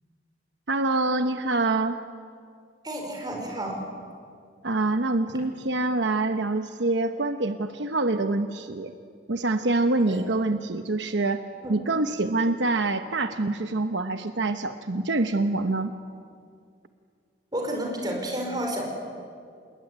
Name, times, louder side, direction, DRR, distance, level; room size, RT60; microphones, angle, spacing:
voice 1, 0.7-2.0 4.6-8.9 9.3-15.9, right 2 dB, 75° right, 8 dB, 1.0 m, -25 dB
voice 2, 2.8-3.8 10.1-10.2 11.6-11.7 17.5-18.8, right 1 dB, 20° right, 1 dB, 5.3 m, -31 dB
28.0 x 20.5 x 9.6 m, 2.3 s
head